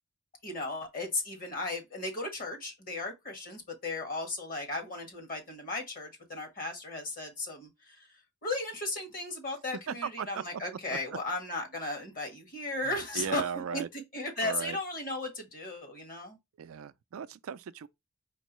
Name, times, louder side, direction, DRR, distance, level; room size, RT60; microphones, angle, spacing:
voice 1, 0.4-8.1 8.4-13.4 13.7-13.8 14.1-16.4, left 2 dB, 45° left, 1.6 m, -36 dB
voice 2, 9.9-10.4 10.9-11.0 13.1-13.9 14.4-14.8 16.6-17.9, right 7 dB, 70° right, 0.4 m, -36 dB
4.5 x 3.6 x 3.0 m
head